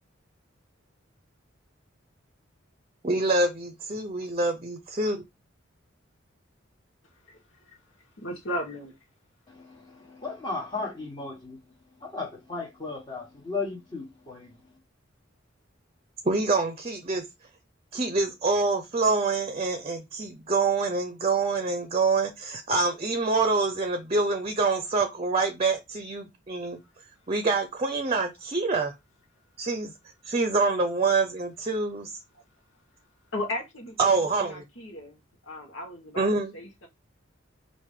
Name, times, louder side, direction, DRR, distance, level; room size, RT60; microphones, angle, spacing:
voice 1, 3.0-5.2 16.2-17.2 17.9-26.8 27.3-28.9 29.6-29.9 30.2-32.1 34.0-34.6 36.2-36.5, right 3 dB, 30° right, 0.7 m, -26 dB
voice 2, 7.2-7.8 8.2-9.0 32.3-32.4 33.3-36.9, left 1 dB, 75° left, 1.1 m, -36 dB
voice 3, 9.5-11.6 12.0-14.8, left 3 dB, 25° left, 1.3 m, -36 dB
4.9 x 2.6 x 3.6 m
head